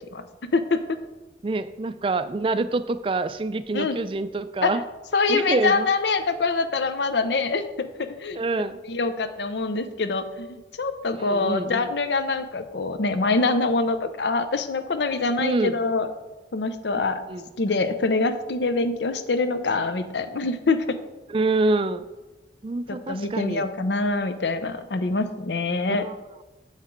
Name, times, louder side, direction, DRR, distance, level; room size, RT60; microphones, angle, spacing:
voice 1, 0.5-1.0 3.7-4.0 4.6-4.7 5.1-8.4 8.8-16.1 16.5-17.2 17.6-21.0 22.9-26.1, left 3 dB, 75° left, 10 dB, 0.7 m, -25 dB
voice 2, 1.4-4.8 5.3-5.9 8.3-8.8 11.2-11.9 15.4-15.8 17.3-17.4 21.3-22.0 22.6-23.7 25.9-26.2, right 3 dB, 30° right, 12 dB, 0.3 m, -26 dB
7.3 x 5.7 x 4.6 m, 1.1 s
head